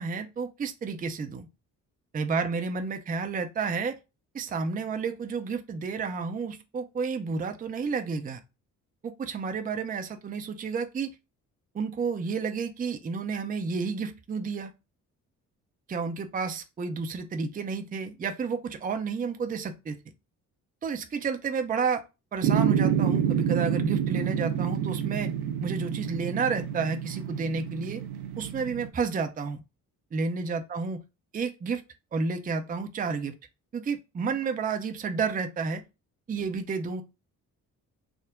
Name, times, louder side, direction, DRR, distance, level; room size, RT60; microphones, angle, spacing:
voice 1, 0.0-1.5 2.1-4.0 4.3-8.4 9.0-11.1 11.7-14.7 15.9-20.0 20.8-22.0 22.3-25.3 25.6-28.0 28.4-29.6 30.1-31.0 31.3-31.8 32.1-33.3 33.7-35.8 36.3-37.0, right 5 dB, 20° right, 0.5 m, -31 dB
sound 1, 22.4-28.9, right 9 dB, 65° right, 0.6 m, -28 dB
3.5 x 2.1 x 3.6 m
hypercardioid pair, 40°, 43 cm